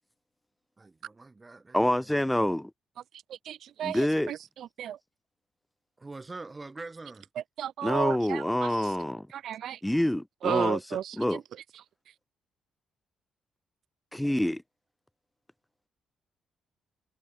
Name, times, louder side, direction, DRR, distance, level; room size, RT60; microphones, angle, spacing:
voice 1, 0.8-2.2 6.0-7.3, right 3 dB, 20° right, 5.5 m, -44 dB
voice 2, 1.7-2.7 3.8-4.3 7.8-9.3 9.8-11.4 14.1-14.6, left 1 dB, 5° left, 0.3 m, -27 dB
voice 3, 3.5-4.0 4.3-5.0 7.6-8.7 9.3-9.8 10.4-11.4, right 10 dB, 70° right, 0.3 m, -33 dB
cardioid pair, 90°, 0 cm